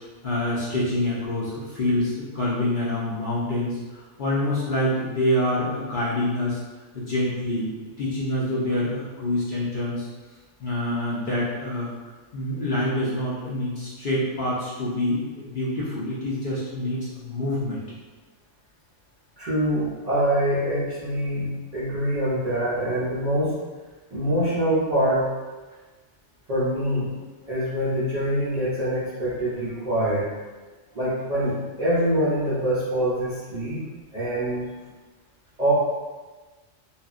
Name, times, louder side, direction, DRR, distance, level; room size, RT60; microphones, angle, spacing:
voice 1, 0.2-6.6 6.9-7.7 8.0-10.1 10.6-11.9 12.3-17.8, left 1 dB, 55° left, -8 dB, 0.6 m, -26 dB
voice 2, 19.4-23.6 24.1-25.3 26.5-27.1 27.5-30.3 30.9-33.8 34.1-34.7 35.6-35.7, right 1 dB, 50° right, -10 dB, 0.5 m, -24 dB
2.8 x 2.4 x 2.4 m, 1.3 s
omnidirectional pair, 1.3 m